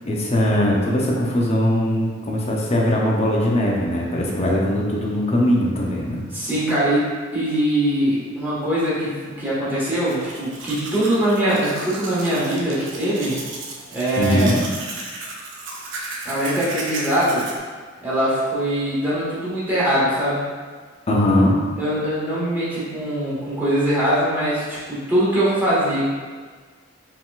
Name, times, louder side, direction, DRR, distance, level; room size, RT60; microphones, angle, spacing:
voice 1, 0.0-6.2 14.2-14.6 21.1-21.6, left 1 dB, 35° left, -2 dB, 0.6 m, -20 dB
voice 2, 6.3-7.1 7.3-13.4 13.9-14.6 16.2-17.5 18.0-20.4 21.8-26.0, right 1 dB, 10° right, -10 dB, 1.4 m, -22 dB
Domestic sounds home sounds, 9.9-17.6, right 3 dB, 65° right, 0.6 m, -34 dB
4.6 x 3.7 x 2.4 m, 1.5 s
head